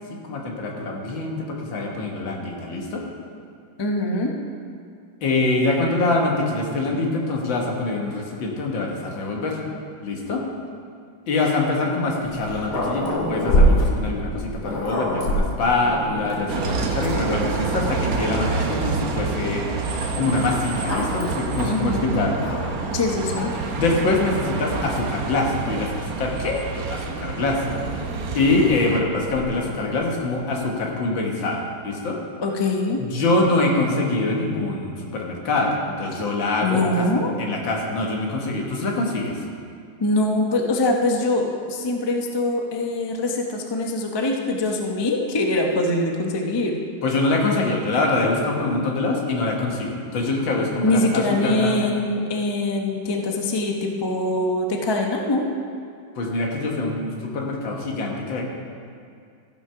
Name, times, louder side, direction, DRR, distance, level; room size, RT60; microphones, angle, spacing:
voice 1, 0.2-3.0 5.2-9.6 10.0-10.4 11.3-19.6 20.2-22.5 23.7-27.6 28.3-32.2 33.0-37.1 37.4-39.3 47.0-51.9 56.2-58.4, left 2 dB, 75° left, 0 dB, 2.1 m, -24 dB
voice 2, 3.8-4.3 21.6-22.1 22.9-23.5 32.4-33.0 36.6-37.3 40.0-46.8 50.8-55.5, left 2 dB, 30° left, 1 dB, 0.4 m, -23 dB
Growling, 12.2-16.8 17.5-17.6 18.0-19.0 20.1-22.9 23.3-23.8 24.7-26.5 27.6-30.2, equal, 60° left, 2.4 m, -27 dB
Bus, 16.5-29.0, right 4 dB, 60° right, 1.1 m, -28 dB
14.5 x 6.2 x 5.7 m, 2.3 s
omnidirectional pair, 2.1 m